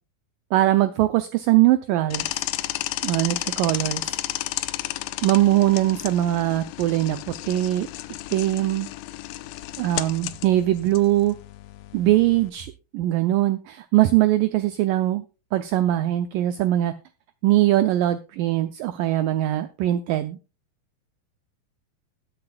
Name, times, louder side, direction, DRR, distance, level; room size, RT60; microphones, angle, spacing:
voice 1, 0.5-2.2 3.0-4.2 5.2-7.2 7.5-7.9 8.3-8.9 9.8-11.4 11.9-15.2 15.5-16.9 17.4-20.4, right 14 dB, 90° right, 10 dB, 1.9 m, -21 dB
sound 1, 2.1-12.5, left 16 dB, 85° left, 2.7 m, -33 dB
20.0 x 7.8 x 2.3 m, 0.32 s
omnidirectional pair, 4.6 m